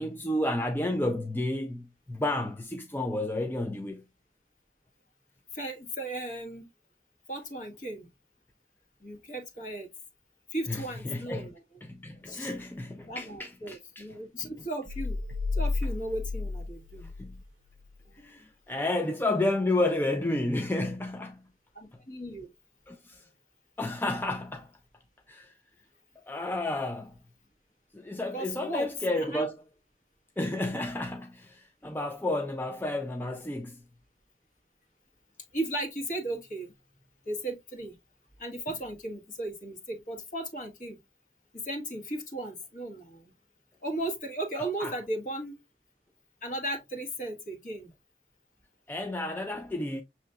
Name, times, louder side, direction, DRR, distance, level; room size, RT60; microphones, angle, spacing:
voice 1, 0.0-4.0 10.7-11.5 11.8-14.1 14.4-14.5 17.2-17.4 18.2-21.4 22.9-23.3 23.8-24.7 25.3-25.5 26.3-27.1 27.9-29.6 30.4-33.8 44.6-44.9 48.9-50.0, left 1 dB, 10° left, 0.4 m, -31 dB
voice 2, 5.5-6.7 7.3-8.1 9.0-9.9 10.5-11.6 12.3-12.5 13.0-15.2 15.5-17.1 18.2-18.4 21.7-22.5 28.3-28.9 29.2-29.4 35.5-36.7 37.3-37.9 38.4-41.0 41.5-43.2 43.8-45.5 46.4-47.9, right 1 dB, 45° left, 1.6 m, -36 dB
sound 1, 14.9-17.4 17.8-17.9, left 3 dB, 85° right, 0.5 m, -32 dB
6.6 x 3.0 x 2.3 m
head